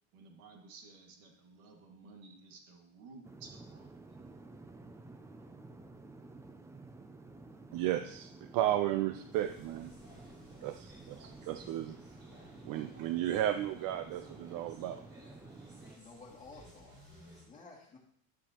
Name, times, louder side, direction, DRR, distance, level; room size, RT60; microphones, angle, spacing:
voice 1, 0.1-4.2, right 4 dB, 85° right, 2 dB, 2.1 m, -55 dB
sound 1, 3.2-16.0, right 3 dB, 10° right, 0.3 m, -52 dB
voice 2, 7.7-9.9 10.6-12.0 12.6-15.0, right 12 dB, 55° right, 9 dB, 0.6 m, -34 dB
sound 2, 9.3-17.4, equal, 25° right, 4.6 m, -58 dB
voice 3, 15.8-18.0, left 4 dB, 20° left, -3 dB, 2.4 m, -54 dB
11.5 x 9.9 x 2.9 m, 0.68 s
cardioid pair, 135°, 40 cm